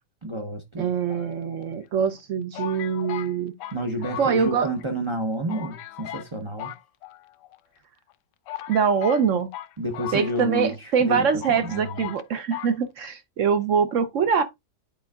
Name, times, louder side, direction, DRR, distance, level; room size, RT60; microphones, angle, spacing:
voice 1, 0.2-0.9 3.7-6.7 9.8-11.3 11.6-12.1, right 1 dB, 40° right, 0.4 m, -30 dB
voice 2, 0.8-3.5 4.2-4.7 8.7-9.5 10.1-14.4, right 6 dB, 65° right, 0.8 m, -23 dB
sound 1, 1.1-1.8 2.5-4.8 5.1-5.2 5.5-6.3 6.6-7.6 8.1-8.2 8.5-10.8 11.0-11.1 11.4-12.2 12.5-12.7, left 13 dB, 80° left, 1.2 m, -38 dB
11.0 x 4.3 x 2.3 m
omnidirectional pair, 1.8 m